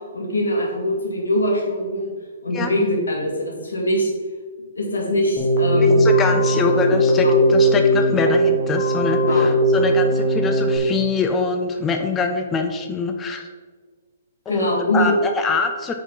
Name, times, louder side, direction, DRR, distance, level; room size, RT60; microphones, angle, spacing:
voice 1, 0.1-2.1 2.4-4.1 4.8-6.3 6.6-6.9 7.2-7.3 9.2-9.5 14.5-15.1, left 1 dB, 90° left, -1 dB, 2.2 m, -23 dB
Keyboard (musical), 5.4-10.8, equal, 35° left, 1.5 m, -18 dB
voice 2, 5.7-13.5 14.5-15.9, left 4 dB, 20° left, 5 dB, 0.5 m, -24 dB
5.7 x 4.6 x 5.6 m, 1.4 s
hypercardioid pair, 135°, 0 cm